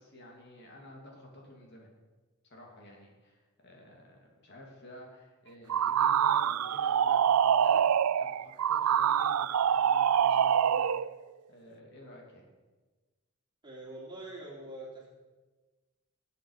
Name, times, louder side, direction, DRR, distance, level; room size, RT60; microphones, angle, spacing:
voice 1, 0.0-1.9 2.4-7.8 8.2-11.0 11.5-12.5, left 1 dB, 50° left, -1 dB, 2.6 m, -51 dB
sound 1, 5.7-11.1, right 8 dB, 85° right, 0.4 m, -25 dB
voice 2, 13.6-15.1, right 1 dB, 20° right, -3 dB, 3.2 m, -44 dB
19.5 x 8.4 x 4.9 m, 1.3 s
head